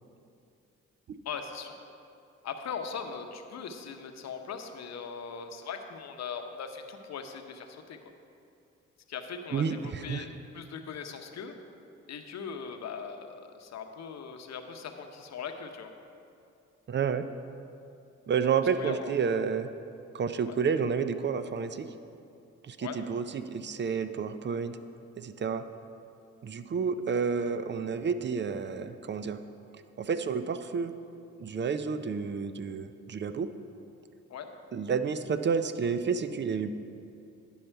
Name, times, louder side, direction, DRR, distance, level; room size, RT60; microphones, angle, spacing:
voice 1, 1.2-1.8 2.4-8.0 9.1-10.3 10.5-11.5 12.1-15.9 18.4-19.2 20.5-20.6 22.8-23.0 34.3-34.5, left 6 dB, 60° left, 6 dB, 0.8 m, -40 dB
voice 2, 9.5-10.2 16.9-17.3 18.3-19.7 20.1-21.9 22.6-24.8 25.2-25.6 26.4-29.4 30.0-30.9 31.4-33.5 34.7-36.7, right 6 dB, 35° right, 11 dB, 0.5 m, -30 dB
10.0 x 5.5 x 4.5 m, 2.6 s
supercardioid pair, 60°, 31 cm